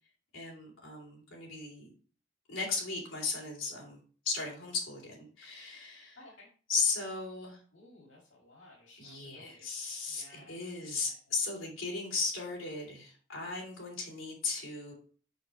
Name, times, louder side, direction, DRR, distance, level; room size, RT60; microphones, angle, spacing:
voice 1, 0.3-1.9 2.5-4.0 4.2-6.2 6.7-7.6 9.0-14.9, left 4 dB, 85° left, -2 dB, 3.1 m, -36 dB
voice 2, 6.2-6.5 7.7-9.6 10.1-11.1, left 2 dB, 65° left, -3 dB, 2.5 m, -56 dB
6.6 x 6.3 x 3.1 m, 0.42 s
head